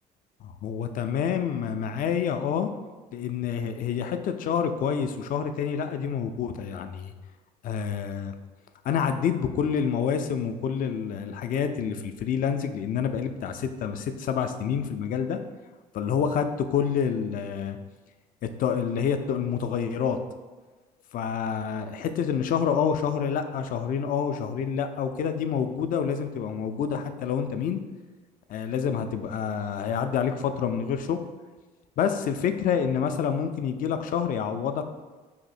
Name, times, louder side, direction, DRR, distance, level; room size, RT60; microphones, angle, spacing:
voice 1, 0.4-2.7 3.1-7.1 7.6-8.4 8.8-15.4 15.9-17.8 18.6-20.2 21.1-27.8 28.5-31.2 32.0-34.8, left 7 dB, 40° left, 8 dB, 0.4 m, -28 dB
2.8 x 2.6 x 4.0 m, 1.3 s
hypercardioid pair, 55°, 21 cm